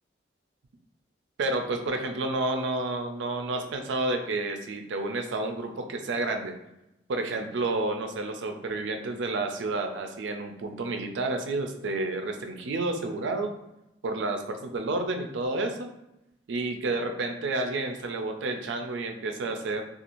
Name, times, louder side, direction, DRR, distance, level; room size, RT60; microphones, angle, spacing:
voice 1, 1.4-6.5 7.1-13.5 14.0-15.9 16.5-19.8, right 2 dB, 85° right, 5 dB, 0.4 m, -30 dB
2.5 x 2.3 x 2.9 m, 0.89 s
head